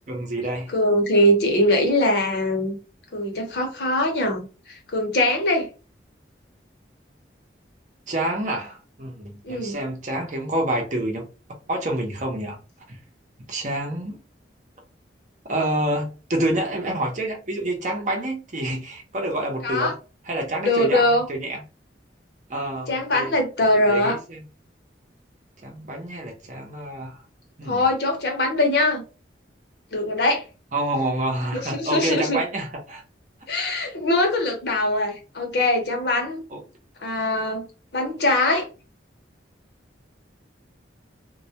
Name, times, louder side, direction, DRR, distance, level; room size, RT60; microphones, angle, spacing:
voice 1, 0.1-0.7 8.1-11.2 11.7-12.6 12.9-13.0 13.5-14.2 15.5-20.0 20.3-21.6 22.5-23.3 23.7-24.4 25.6-27.2 27.6-27.8 30.7-33.0 36.5-36.6, right 1 dB, 40° right, 0.7 m, -28 dB
voice 2, 0.7-2.8 3.1-5.7 9.4-9.8 19.6-19.9 20.6-21.3 22.9-24.2 27.7-29.0 29.9-30.4 31.5-32.4 33.5-36.4 37.0-37.6 37.9-38.7, left 1 dB, 60° left, 0.8 m, -22 dB
2.2 x 2.1 x 2.7 m
head